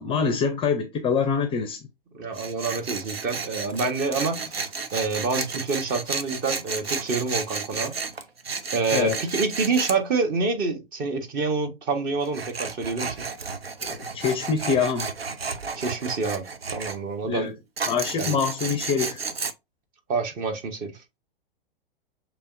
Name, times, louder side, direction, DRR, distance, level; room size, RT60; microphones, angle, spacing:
voice 1, 0.0-1.8 8.9-9.2 13.8-15.1 17.3-17.5 17.8-19.2, left 6 dB, 20° left, 0.5 m, -25 dB
voice 2, 2.1-7.9 8.7-13.3 15.7-16.4 16.7-17.5 18.1-18.4 20.1-21.0, right 4 dB, 30° right, 0.9 m, -27 dB
Tools, 2.3-10.0 12.2-17.0 17.8-19.5, right 4 dB, 90° right, 0.6 m, -32 dB
6.6 x 3.0 x 2.5 m
figure-of-eight pair, 105°, 29 cm